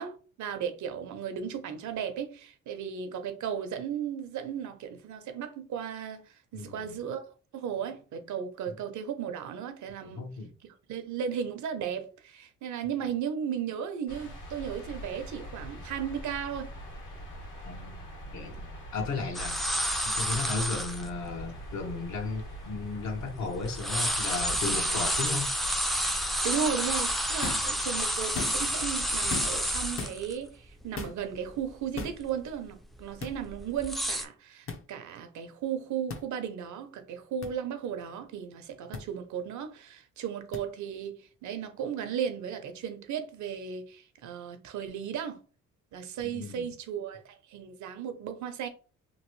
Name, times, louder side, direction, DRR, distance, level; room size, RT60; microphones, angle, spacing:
voice 1, 0.0-7.2 7.5-10.3 10.9-16.7 26.3-45.4 45.9-48.7, right 8 dB, 70° right, 0.7 m, -35 dB
voice 2, 6.5-7.0 10.0-10.5 17.6-18.0 18.3-19.6 20.0-25.5 46.2-46.7, left 3 dB, 65° left, 1.1 m, -35 dB
sound 1, 14.1-29.9, equal, 85° left, 1.5 m, -44 dB
sound 2, 19.3-21.1 21.7-21.8 22.4-23.4 23.7-30.3 30.7-30.8 31.2-31.6 32.0-32.3 32.9-34.2, equal, ahead, 0.4 m, -30 dB
sound 3, 27.4-27.7 28.2-28.8 29.3-29.7 30.0-30.2 31.0-31.2 32.0-32.2 33.2-33.3 34.7-34.8 36.1-36.2 37.4-37.5 38.9-39.0 40.5-40.6, left 4 dB, 45° left, 0.7 m, -36 dB
3.0 x 2.6 x 3.1 m
cardioid pair, 90°, 30 cm